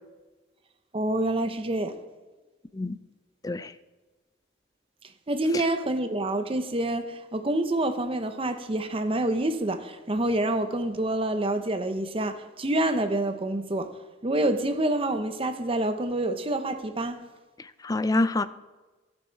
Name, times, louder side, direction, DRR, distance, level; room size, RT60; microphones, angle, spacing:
voice 1, 0.9-2.0 5.3-17.2, right 1 dB, 30° right, 0.7 m, -27 dB
voice 2, 17.8-18.4, left 2 dB, 20° left, 0.4 m, -25 dB
14.5 x 8.4 x 4.5 m
head